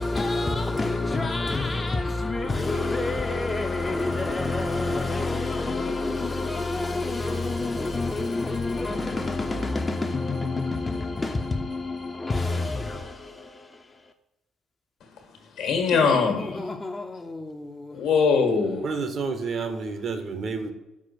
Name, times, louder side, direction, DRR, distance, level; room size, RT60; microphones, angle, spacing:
voice 1, 0.0-14.1 15.9-18.0, left 3 dB, 25° left, 0.5 m, -28 dB
voice 2, 15.5-16.7 17.9-18.8, left 5 dB, 70° left, 1.3 m, -22 dB
voice 3, 18.8-20.7, right 4 dB, 55° right, 0.9 m, -30 dB
6.1 x 4.5 x 4.2 m
hypercardioid pair, 55°, 0 cm